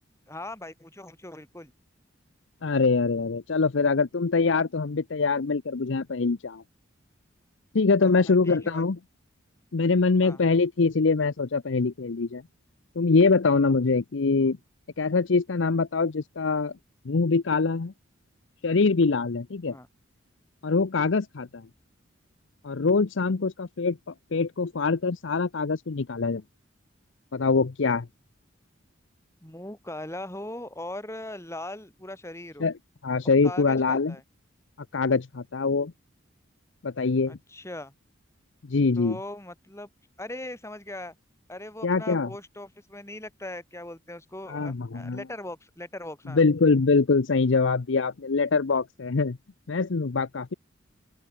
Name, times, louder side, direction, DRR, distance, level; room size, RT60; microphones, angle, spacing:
voice 1, 0.3-1.7 8.0-8.9 10.2-10.4 19.6-19.9 29.4-32.7 33.4-34.2 37.3-37.9 39.0-39.9 40.2-41.1 41.5-46.4, left 1 dB, 15° left, 5.1 m, -40 dB
voice 2, 2.6-6.6 7.7-9.0 9.7-12.4 13.0-14.6 15.0-16.7 17.1-17.9 18.6-19.7 20.6-21.6 22.6-26.4 27.3-28.1 32.6-32.7 33.0-34.1 34.9-35.9 36.8-37.4 38.7-39.2 41.8-42.3 44.5-45.2 46.3-49.4 49.7-50.5, left 4 dB, 65° left, 0.7 m, -24 dB
open air
head